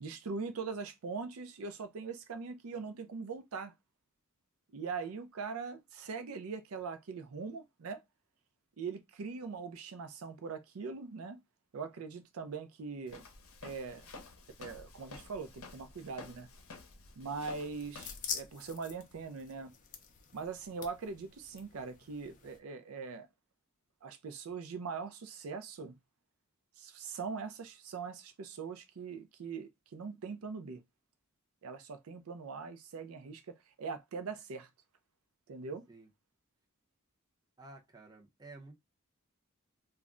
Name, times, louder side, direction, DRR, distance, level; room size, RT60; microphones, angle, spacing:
voice 1, 0.0-3.7 4.7-8.0 8.8-11.4 11.7-13.2 13.6-14.1 14.6-16.5 17.2-19.7 20.3-23.3 24.0-26.0 26.8-30.8 31.6-34.7 35.5-35.9, right 5 dB, 80° right, 0.5 m, -41 dB
Walk footsteps, 13.1-18.3, left 3 dB, 75° left, 0.7 m, -51 dB
sound 1, 17.4-22.6, left 7 dB, 40° left, 0.5 m, -46 dB
voice 2, 37.6-38.7, right 2 dB, 20° right, 0.6 m, -53 dB
2.3 x 2.1 x 3.6 m
head